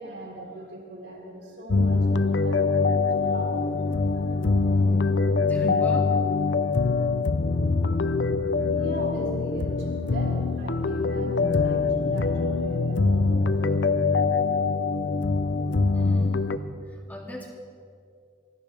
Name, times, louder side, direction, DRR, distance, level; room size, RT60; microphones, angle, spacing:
voice 1, 0.0-3.7 8.7-13.9, right 1 dB, 80° right, -2 dB, 4.1 m, -39 dB
sound 1, 1.7-16.6, left 4 dB, 75° left, 0.7 m, -23 dB
voice 2, 4.6-6.1 15.9-16.5 16.9-17.5, equal, 10° left, -1 dB, 2.3 m, -38 dB
24.0 x 17.0 x 3.5 m, 2.3 s
head